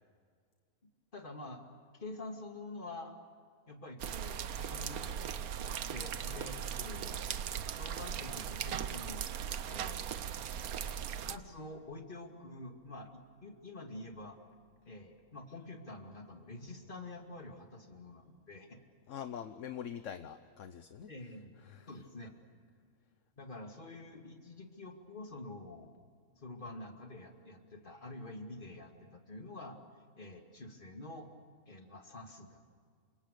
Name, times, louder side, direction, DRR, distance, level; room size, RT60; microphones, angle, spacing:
voice 1, 1.1-1.6 1.9-3.2 3.7-7.2 7.8-9.3 9.7-10.2 11.2-14.4 14.8-18.8 21.1-21.6 21.9-22.3 23.4-25.9 26.4-29.8 30.2-31.3 31.7-32.7, left 2 dB, 35° left, 3 dB, 2.7 m, -47 dB
sound 1, 4.0-11.4, right 8 dB, 75° right, 1.3 m, -38 dB
voice 2, 19.1-21.1 21.6-21.9, left 8 dB, 60° left, 10 dB, 1.2 m, -44 dB
29.0 x 26.0 x 6.8 m, 2.1 s
omnidirectional pair, 1.6 m